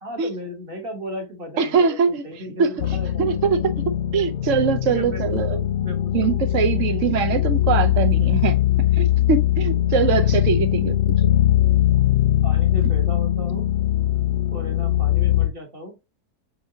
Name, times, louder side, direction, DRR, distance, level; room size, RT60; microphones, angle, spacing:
voice 1, 0.0-3.4 4.8-6.4 6.9-7.0 7.8-7.9 9.9-10.4 12.4-13.6 14.5-16.0, equal, 40° right, 1.3 m, -36 dB
voice 2, 1.6-2.2 2.6-2.7 3.2-3.6 4.1-5.6 6.1-8.6 9.0-11.2, right 6 dB, 60° right, 0.9 m, -22 dB
sound 1, 2.8-15.5, left 12 dB, 65° left, 0.6 m, -21 dB
5.5 x 3.5 x 2.7 m
omnidirectional pair, 1.7 m